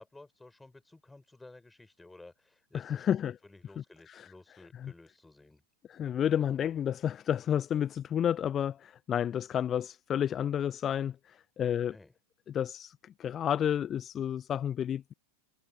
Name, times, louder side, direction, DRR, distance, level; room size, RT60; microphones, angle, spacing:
voice 1, 0.0-3.1 3.4-5.6 11.6-12.1, left 2 dB, 5° left, 7.2 m, -54 dB
voice 2, 2.9-3.3 4.1-4.3 4.8-4.9 5.9-11.9 12.5-15.1, left 9 dB, 25° left, 0.9 m, -31 dB
figure-of-eight pair, 90°, 0 cm